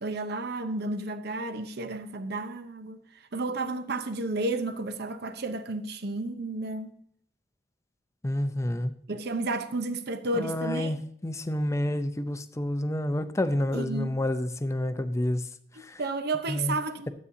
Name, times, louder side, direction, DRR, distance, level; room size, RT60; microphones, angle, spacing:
voice 1, 0.0-3.0 3.3-6.9 9.1-10.9 13.7-14.2 15.8-17.1, right 2 dB, 65° right, 0.8 m, -32 dB
voice 2, 8.2-8.9 10.3-15.5 15.8-16.0 16.5-16.7, left 1 dB, 15° left, 0.5 m, -29 dB
12.5 x 8.3 x 2.7 m
head